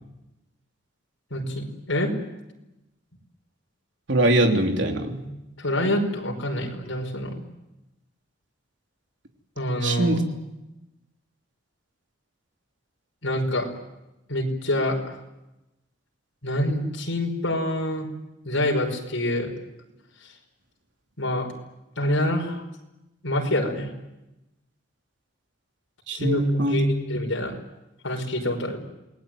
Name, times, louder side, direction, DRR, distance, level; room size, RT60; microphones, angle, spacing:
voice 1, 1.3-2.1 5.6-7.4 9.6-10.2 13.2-13.7 14.3-15.2 16.4-18.1 18.4-19.5 21.2-21.5 22.0-22.6 23.2-23.9 26.1-27.6 28.0-28.8, left 1 dB, 80° left, 1 dB, 5.4 m, -26 dB
voice 2, 4.1-5.3 9.8-10.2 26.1-26.9, right 1 dB, 70° right, 3 dB, 3.3 m, -22 dB
28.5 x 20.0 x 9.3 m, 0.97 s
head